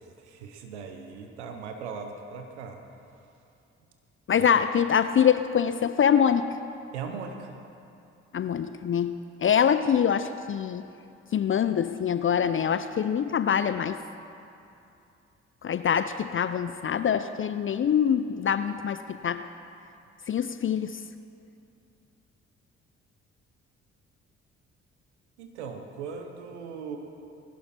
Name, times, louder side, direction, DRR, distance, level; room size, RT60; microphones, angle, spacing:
voice 1, 0.0-2.8 4.4-4.5 6.9-7.5 25.4-27.0, right 5 dB, 90° right, 5 dB, 0.9 m, -39 dB
voice 2, 4.3-6.5 8.3-10.8 11.3-14.0 15.6-19.5 20.3-21.0, left 8 dB, 40° left, 12 dB, 0.6 m, -24 dB
20.5 x 12.0 x 4.3 m, 2.7 s
hypercardioid pair, 45°, 33 cm